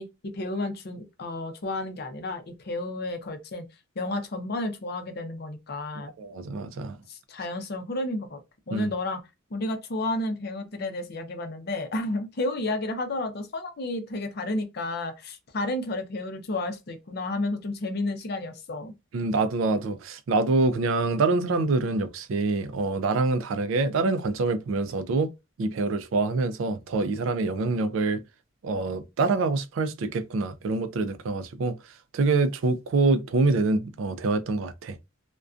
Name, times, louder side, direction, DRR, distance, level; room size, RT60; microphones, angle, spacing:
voice 1, 0.0-3.7 4.0-6.1 7.1-8.4 8.7-9.2 9.5-18.9, left 2 dB, 50° left, 0.5 m, -31 dB
voice 2, 6.0-7.0 8.7-8.9 19.1-25.3 25.6-28.2 28.6-31.8 32.1-35.0, right 3 dB, 70° right, 0.3 m, -25 dB
2.5 x 2.1 x 2.3 m
head